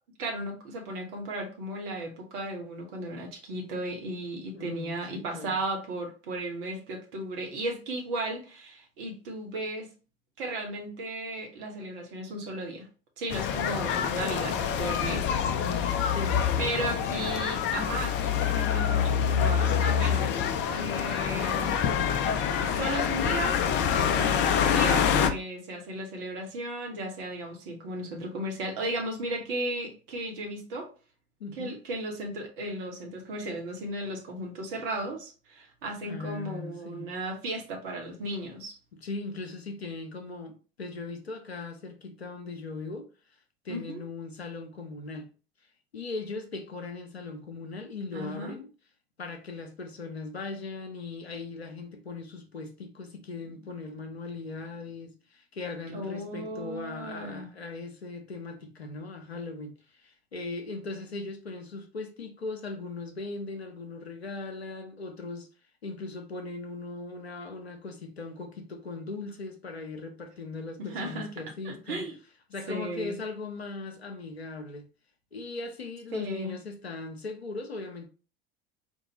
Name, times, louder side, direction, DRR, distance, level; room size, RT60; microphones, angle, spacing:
voice 1, 0.2-9.9 10.4-12.9 13.2-15.3 16.6-20.3 20.7-21.7 22.6-23.6 23.9-30.9 31.6-38.8 43.7-44.0 48.1-48.5 55.9-57.5 70.8-71.3 71.6-72.1 72.7-73.1 76.1-76.5, right 1 dB, 60° right, 1.1 m, -35 dB
voice 2, 4.5-5.6 15.5-17.0 31.4-31.8 36.0-37.1 39.0-43.1 43.6-45.3 45.9-48.7 49.2-65.5 65.8-72.0 72.5-74.9 75.3-78.1, left 3 dB, 85° left, 0.7 m, -39 dB
sound 1, 13.3-25.3, left 8 dB, 35° left, 0.5 m, -26 dB
4.4 x 2.3 x 2.9 m
figure-of-eight pair, 70°, 31 cm